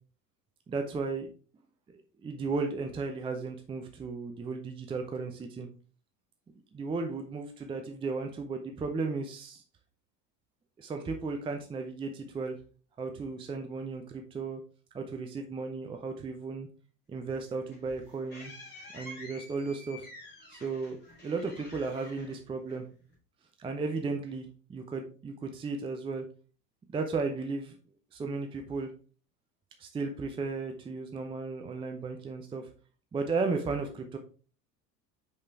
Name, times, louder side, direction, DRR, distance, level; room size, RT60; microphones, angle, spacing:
voice 1, 0.7-1.3 1.9-5.7 6.7-9.6 10.8-12.6 13.0-14.6 14.9-16.7 17.1-18.5 18.9-20.1 20.5-21.0 21.2-22.9 23.6-26.2 26.9-27.8 28.1-28.9 29.8-32.7 33.1-34.2, right 4 dB, 10° right, 5 dB, 0.6 m, -35 dB
sound 1, 17.3-23.1, left 1 dB, 20° left, 3.6 m, -50 dB
6.2 x 5.2 x 3.4 m, 0.39 s
figure-of-eight pair, 75°, 49 cm